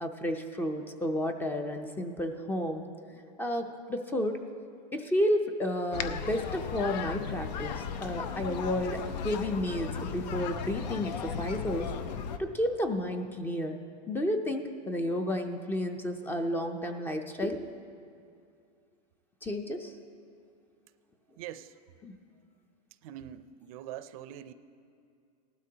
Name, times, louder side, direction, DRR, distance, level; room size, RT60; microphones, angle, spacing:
voice 1, 0.0-2.9 3.1-4.4 4.9-11.9 12.4-13.8 14.1-17.7 19.4-19.9 22.0-22.1, left 1 dB, 10° left, 6 dB, 0.4 m, -31 dB
sound 1, 5.9-12.4, left 6 dB, 85° left, 0.7 m, -36 dB
voice 2, 21.4-21.8 23.0-24.5, right 11 dB, 55° right, 12 dB, 0.5 m, -43 dB
18.5 x 12.0 x 2.8 m, 2.4 s
supercardioid pair, 150°, 21 cm